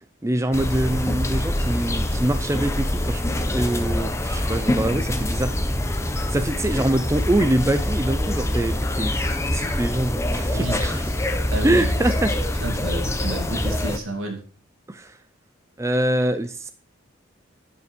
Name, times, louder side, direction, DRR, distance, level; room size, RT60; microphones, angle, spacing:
voice 1, 0.2-5.6 6.3-9.1 9.5-11.0 11.6-12.3 14.9-15.2 15.8-16.7, right 1 dB, 15° right, 10 dB, 0.5 m, -24 dB
sound 1, 0.5-14.0, left 1 dB, 15° left, 0.8 m, -25 dB
voice 2, 10.5-11.2 11.5-12.1 12.6-14.4, right 1 dB, 85° right, 3 dB, 2.7 m, -30 dB
11.0 x 5.5 x 5.2 m, 0.39 s
head